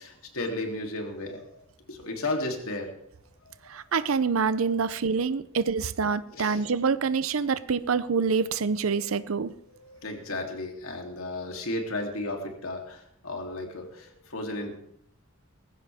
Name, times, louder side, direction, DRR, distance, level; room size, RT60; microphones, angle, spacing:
voice 1, 0.0-1.6 1.9-2.9 3.4-3.8 4.7-4.8 6.2-6.7 8.8-9.1 9.7-14.8, left 2 dB, 90° left, 3.2 m, -34 dB
voice 2, 3.7-9.5, right 5 dB, 75° right, 0.6 m, -26 dB
20.0 x 15.5 x 3.6 m
head